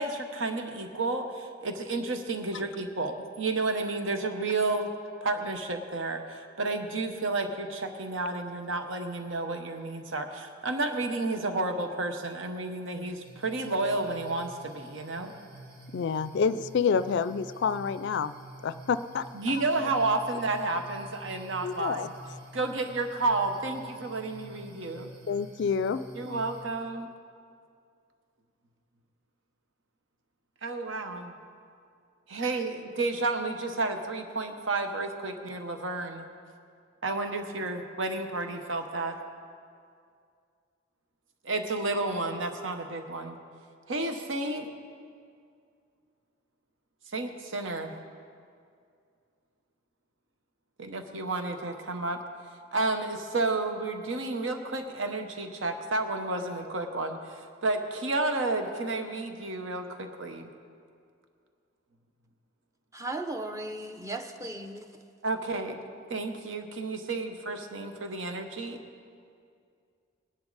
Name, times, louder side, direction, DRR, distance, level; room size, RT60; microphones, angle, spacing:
voice 1, 0.0-4.9 5.2-15.3 19.3-22.1 22.5-25.1 26.1-27.1 30.6-31.3 32.3-36.3 37.0-39.2 41.4-43.4 43.9-44.7 47.1-47.9 50.8-52.2 52.7-60.5 65.2-65.8 66.1-68.8, right 2 dB, 75° right, 6 dB, 1.0 m, -31 dB
sound 1, 13.2-26.6, right 1 dB, 55° right, 1.4 m, -49 dB
voice 2, 15.9-18.3 18.6-19.2 19.8-19.9 21.6-22.1 25.3-26.4, left 6 dB, 65° left, 14 dB, 0.4 m, -28 dB
voice 3, 62.9-64.9, right 2 dB, 15° right, 6 dB, 0.7 m, -36 dB
19.5 x 10.5 x 4.0 m, 2.3 s
head